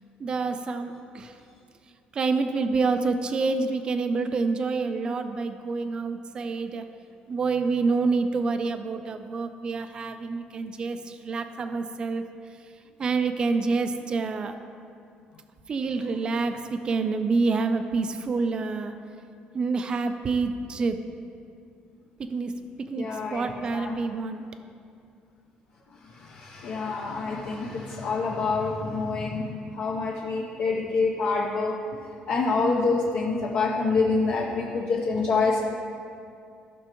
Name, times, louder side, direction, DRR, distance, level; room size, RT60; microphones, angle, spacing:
voice 1, 0.2-1.4 2.1-6.9 7.3-12.2 13.0-14.6 15.7-19.0 19.5-21.1 22.2-22.5 22.8-24.4, right 4 dB, 30° right, 8 dB, 0.5 m, -27 dB
voice 2, 22.9-24.0 26.1-31.7 32.3-35.6, left 4 dB, 55° left, -3 dB, 0.8 m, -26 dB
15.0 x 6.0 x 3.0 m, 2.4 s
cardioid pair, 160°, 3 cm